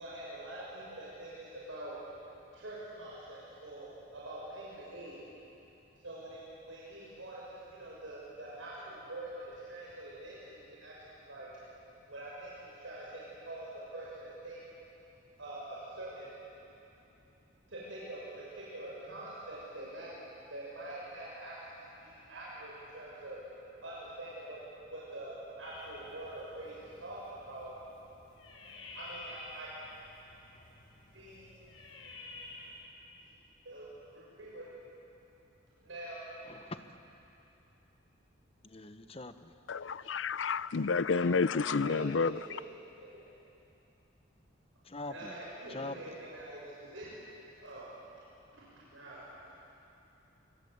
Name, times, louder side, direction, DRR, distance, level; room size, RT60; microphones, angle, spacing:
voice 1, 0.0-2.0 2.5-5.2 6.0-11.5 12.1-14.6 15.4-16.4 17.7-20.1 20.5-23.4 23.8-24.6 24.9-27.7 28.9-29.7 31.1-31.5 33.6-33.9 34.1-34.6 35.8-36.2 41.1-41.2 41.8-42.6 43.0-43.2 45.1-47.1 47.6-47.9 48.5-49.3, right 1 dB, 80° right, 7.2 m, -45 dB
sound 1, 25.6-32.8, left 2 dB, 85° left, 7.1 m, -51 dB
voice 2, 36.4-36.8 38.6-39.5 44.8-45.3 45.7-46.0, left 2 dB, 30° left, 1.1 m, -43 dB
voice 3, 39.7-42.3, left 4 dB, 70° left, 0.6 m, -30 dB
26.0 x 24.5 x 8.2 m
head